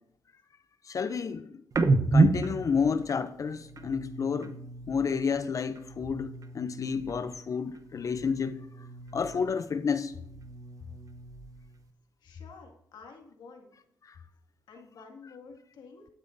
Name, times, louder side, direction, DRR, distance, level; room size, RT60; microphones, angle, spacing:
voice 1, 0.8-1.5 2.1-4.6 4.9-8.6 9.1-10.1 14.0-14.2, left 6 dB, 45° left, 0.5 m, -30 dB
sound 1, 1.7-5.3 5.6-7.4 7.7-9.6 9.9-11.8, right 3 dB, 50° right, 0.9 m, -31 dB
voice 2, 12.2-13.7 14.7-16.1, left 4 dB, 75° left, 2.0 m, -50 dB
12.5 x 9.5 x 2.6 m
cardioid pair, 65°, 8 cm